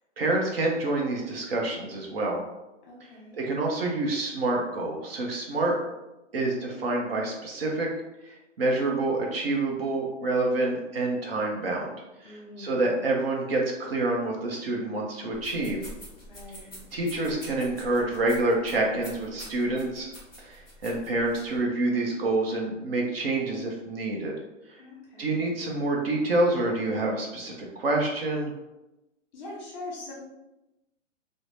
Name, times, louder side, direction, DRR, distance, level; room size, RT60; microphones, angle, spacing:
voice 1, 0.2-2.4 3.4-5.8 6.3-7.9 8.2-11.9 12.2-15.8 16.9-20.1 20.4-24.3 24.7-24.8 25.2-28.5, right 2 dB, 50° right, -1 dB, 0.6 m, -27 dB
voice 2, 2.8-3.4 12.2-12.9 16.3-16.9 24.8-25.5 29.3-30.1, left 2 dB, 35° left, -4 dB, 0.9 m, -42 dB
sound 1, 15.3-21.6, equal, ahead, 0.4 m, -46 dB
2.6 x 2.0 x 3.2 m, 0.97 s
hypercardioid pair, 155°, 38 cm